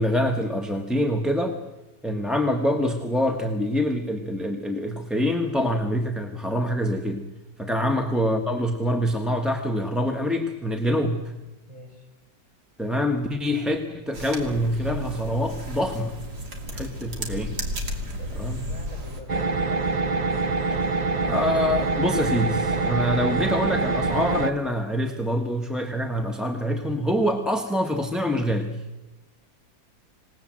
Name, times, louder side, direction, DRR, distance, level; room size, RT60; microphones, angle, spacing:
voice 1, 0.0-1.6 2.0-7.2 7.6-11.3 12.8-16.2 16.7-17.5 18.4-18.6 21.2-28.8, equal, ahead, 3 dB, 1.2 m, -25 dB
voice 2, 11.7-12.1 16.7-17.1 18.2-19.6, equal, 15° right, 1 dB, 6.5 m, -45 dB
sound 1, 14.1-19.2, equal, 65° right, 3.3 m, -33 dB
sound 2, 19.3-24.5, right 3 dB, 35° right, 0.8 m, -25 dB
27.0 x 18.5 x 7.7 m, 1.1 s
omnidirectional pair, 1.9 m